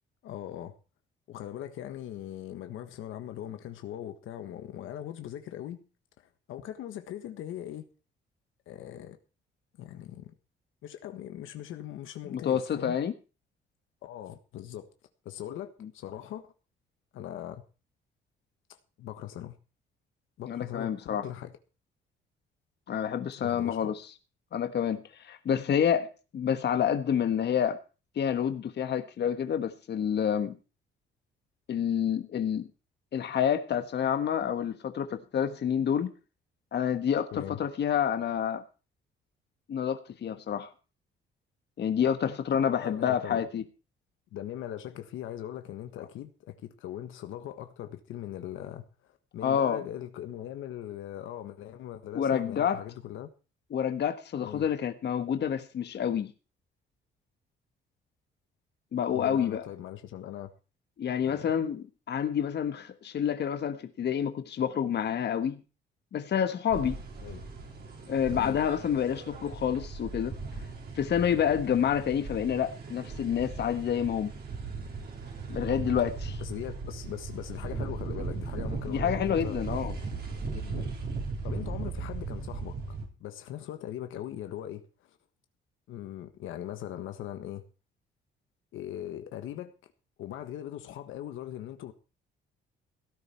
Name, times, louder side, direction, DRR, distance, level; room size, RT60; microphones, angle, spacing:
voice 1, 0.2-0.7 1.3-5.8 6.5-7.9 8.7-9.2 9.8-10.3 10.8-13.0 14.0-14.9 15.2-16.5 17.1-17.6 18.7-19.6 20.4-21.5 23.4-23.9 37.3-37.6 42.6-43.5 44.3-53.3 54.4-54.7 59.1-60.5 61.2-61.5 67.2-67.5 68.3-68.6 76.4-79.6 80.4-80.9 81.2-84.9 85.9-87.6 88.7-89.7 90.2-91.9, left 11 dB, 85° left, 1.6 m, -40 dB
voice 2, 12.2-13.1 15.8-15.9 20.5-21.3 22.9-23.9 24.5-27.8 28.1-30.5 31.7-32.7 33.1-36.1 36.7-38.6 39.7-40.7 41.8-43.6 49.4-49.8 52.1-52.8 53.7-56.3 58.9-59.7 61.0-65.6 66.1-67.0 68.1-70.4 71.0-74.3 75.5-76.4 78.9-79.9, left 8 dB, 60° left, 1.5 m, -28 dB
sound 1, 66.7-83.1, right 4 dB, 55° right, 4.2 m, -37 dB
17.0 x 10.5 x 4.5 m
cardioid pair, 90°, 20 cm